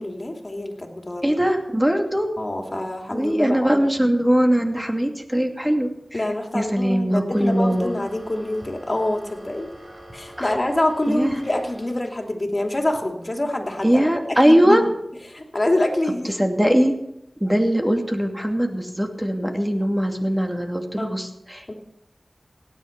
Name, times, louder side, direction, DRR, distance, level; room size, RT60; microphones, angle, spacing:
voice 1, 0.0-1.4 2.4-3.8 6.1-9.7 10.1-14.8 15.3-16.4 21.0-21.1 21.7-21.8, left 1 dB, 40° left, 3 dB, 2.8 m, -26 dB
voice 2, 1.2-2.3 3.1-6.2 6.5-7.9 10.4-10.5 11.1-11.4 13.8-14.8 16.2-17.0 17.4-21.6, equal, 15° right, 3 dB, 2.5 m, -21 dB
sound 1, 7.3-12.3, equal, 30° right, 5.0 m, -44 dB
17.0 x 10.0 x 6.0 m, 0.83 s
wide cardioid pair, 45°, 0 cm